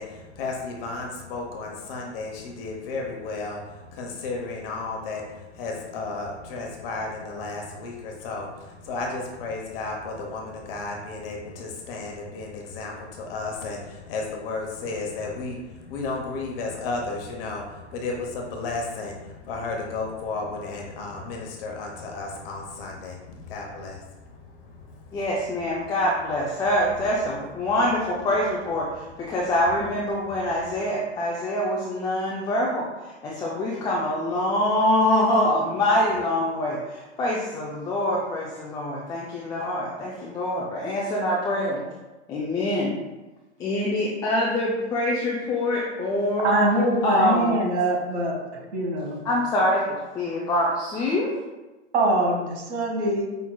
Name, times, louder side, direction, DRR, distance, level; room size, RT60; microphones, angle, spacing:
voice 1, 0.0-3.6 3.9-5.2 5.5-15.6 15.9-23.2 23.5-24.0, left 3 dB, 50° left, 0 dB, 1.0 m, -33 dB
voice 2, 25.1-41.8 42.3-42.9 43.6-46.5 47.0-47.6 49.2-51.3, left 1 dB, 10° left, -4 dB, 0.3 m, -25 dB
voice 3, 46.4-49.2 51.9-53.3, right 1 dB, 65° right, 0 dB, 1.4 m, -23 dB
5.8 x 3.8 x 2.2 m, 1.1 s
hypercardioid pair, 110°, 36 cm